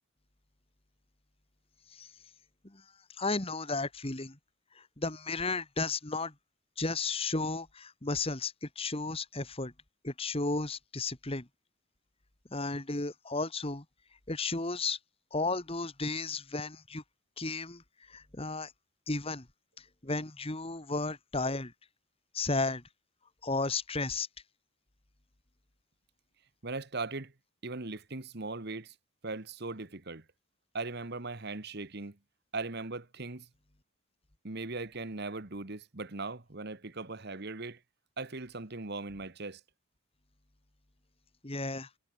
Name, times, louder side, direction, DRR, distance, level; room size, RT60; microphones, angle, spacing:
voice 1, 3.2-4.4 5.0-6.3 6.8-9.7 10.0-11.5 12.5-13.8 14.3-15.0 15.3-17.0 17.4-17.8 18.1-18.7 19.1-19.5 20.0-21.7 22.3-22.8 23.4-24.3 41.4-41.9, left 3 dB, 25° left, 1.7 m, -33 dB
voice 2, 26.6-27.3 27.6-28.9 29.2-30.2 30.7-32.2 32.5-33.5 34.4-37.8 38.2-39.6, right 3 dB, 50° right, 1.5 m, -39 dB
head